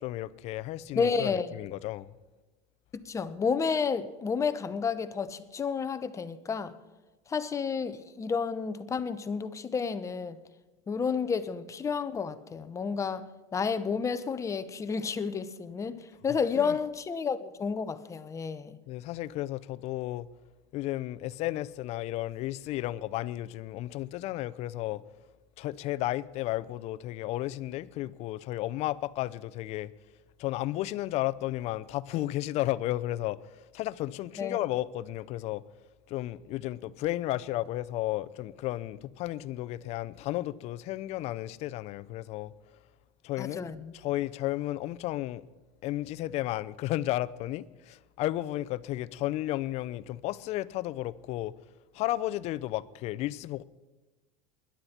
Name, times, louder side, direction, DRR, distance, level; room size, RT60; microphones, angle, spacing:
voice 1, 0.0-2.1 16.6-16.8 18.9-20.3 20.7-25.0 25.6-29.9 30.4-35.6 36.1-42.5 43.2-43.7 43.9-45.4 45.8-51.5 51.9-53.6, left 15 dB, 50° left, 0.6 m, -33 dB
voice 2, 1.0-1.5 2.9-6.7 7.3-10.4 10.9-18.8 34.4-34.6 43.4-43.9, left 5 dB, 20° left, 0.9 m, -31 dB
20.5 x 11.5 x 4.4 m
supercardioid pair, 125°, 14 cm